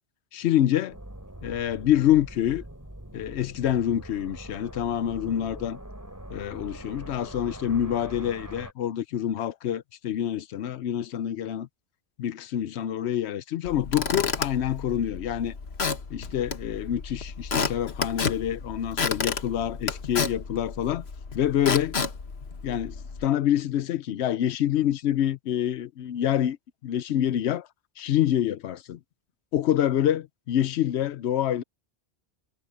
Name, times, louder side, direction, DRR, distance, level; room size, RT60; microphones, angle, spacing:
voice 1, 0.3-0.9 1.4-2.6 3.1-5.8 6.3-11.7 12.2-15.5 16.1-21.0 21.3-22.0 22.6-26.6 26.8-27.7 28.0-29.0 29.5-31.6, left 11 dB, 90° left, 0.9 m, -26 dB
sound 1, 0.9-8.7, right 1 dB, 15° right, 2.9 m, -42 dB
Squeak / Wood, 13.6-23.3, left 5 dB, 70° left, 1.6 m, -31 dB
omnidirectional pair, 1.1 m